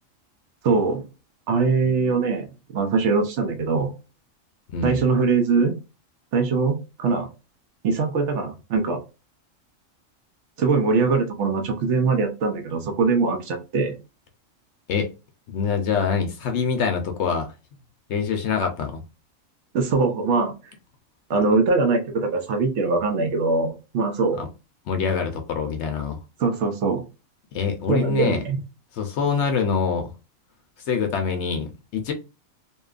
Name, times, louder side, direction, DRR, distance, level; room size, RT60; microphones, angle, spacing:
voice 1, 0.6-1.0 1.5-3.9 4.8-5.8 6.3-7.3 7.8-9.0 10.6-14.0 19.7-20.5 21.3-24.4 26.4-27.0 27.9-28.6, right 4 dB, 70° right, 0.8 m, -22 dB
voice 2, 15.5-17.5 18.1-19.0 24.4-24.5 24.9-26.2 27.5-28.4 29.0-30.1 30.9-32.1, left 6 dB, 65° left, 0.8 m, -25 dB
2.7 x 2.3 x 2.3 m
omnidirectional pair, 1.4 m